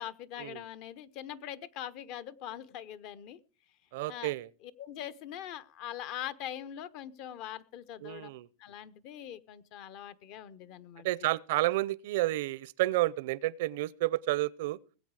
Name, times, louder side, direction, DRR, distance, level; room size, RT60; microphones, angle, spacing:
voice 1, 0.0-3.4 4.1-4.3 4.6-8.3 8.6-11.1, left 10 dB, 45° left, 0.8 m, -42 dB
voice 2, 3.9-4.5 8.0-8.5 11.0-14.8, right 17 dB, 65° right, 0.5 m, -30 dB
19.5 x 8.1 x 4.8 m
supercardioid pair, 145°, 0 cm